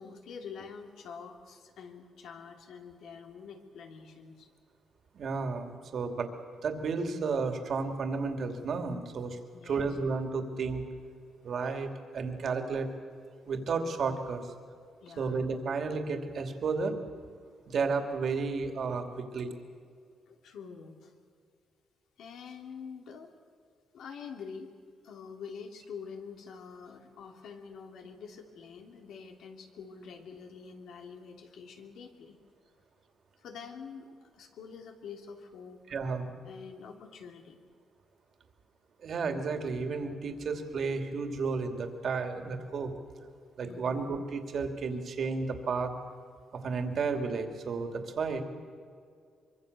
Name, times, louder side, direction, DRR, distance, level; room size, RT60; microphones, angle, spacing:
voice 1, 0.0-4.5 9.5-10.0 11.5-11.6 15.0-15.4 20.3-21.1 22.2-23.3 23.9-24.7 25.0-32.4 33.4-35.8 36.4-37.6 43.6-44.1, left 6 dB, 80° left, 3 dB, 2.9 m, -46 dB
voice 2, 5.1-6.3 6.6-9.4 9.6-10.8 11.4-12.9 13.5-14.4 15.2-17.0 17.7-19.5 35.9-36.2 39.0-42.9 43.6-45.9 46.5-48.4, right 4 dB, 50° right, 5 dB, 2.7 m, -32 dB
24.5 x 24.0 x 6.8 m, 2.2 s
cardioid pair, 140°, 0 cm